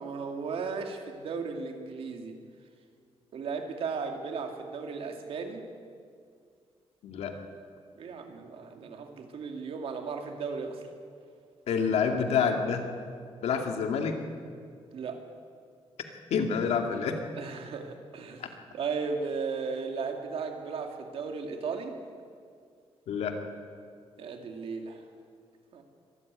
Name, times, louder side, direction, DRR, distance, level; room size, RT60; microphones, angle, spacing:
voice 1, 0.0-2.4 3.3-5.6 8.0-10.9 14.9-15.2 17.4-18.5 18.7-22.0 24.2-25.0 25.7-25.8, right 5 dB, 65° right, 4 dB, 2.5 m, -35 dB
voice 2, 7.0-7.4 11.7-12.8 13.4-14.2 16.3-17.2 18.4-18.5 23.1-23.4, left 6 dB, 90° left, 4 dB, 2.4 m, -27 dB
23.5 x 14.0 x 9.5 m, 2.2 s
wide cardioid pair, 160°, 11 cm